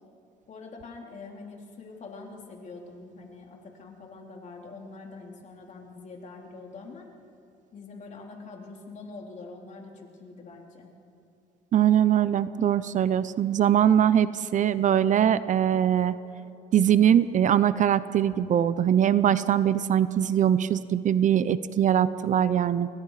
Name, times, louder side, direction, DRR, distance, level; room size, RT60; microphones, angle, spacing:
voice 1, 0.5-7.1 7.7-10.9, left 3 dB, 45° left, 1 dB, 3.6 m, -44 dB
voice 2, 11.7-16.2 16.7-22.9, right 9 dB, 50° right, 15 dB, 0.7 m, -22 dB
28.0 x 22.5 x 5.0 m, 2.7 s
cardioid pair, 110°, 17 cm